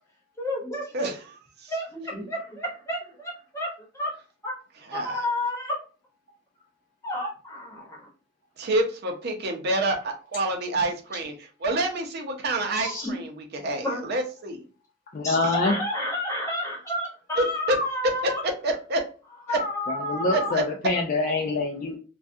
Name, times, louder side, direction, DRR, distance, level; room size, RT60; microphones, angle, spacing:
voice 1, 0.4-1.1 1.7-3.7 3.9-4.1 4.4-4.5 4.9-5.7 7.0-8.1 12.7-13.2 13.8-14.2 15.2-18.4 19.5-20.5, left 1 dB, 15° left, -3 dB, 1.1 m, -30 dB
voice 2, 8.6-11.3 11.6-14.6 17.4-17.8 18.6-19.0 20.3-20.6, right 2 dB, 55° right, 3 dB, 0.6 m, -27 dB
voice 3, 15.1-15.7 19.9-22.0, left 3 dB, 45° left, 1 dB, 0.4 m, -25 dB
2.3 x 2.3 x 2.5 m, 0.37 s
head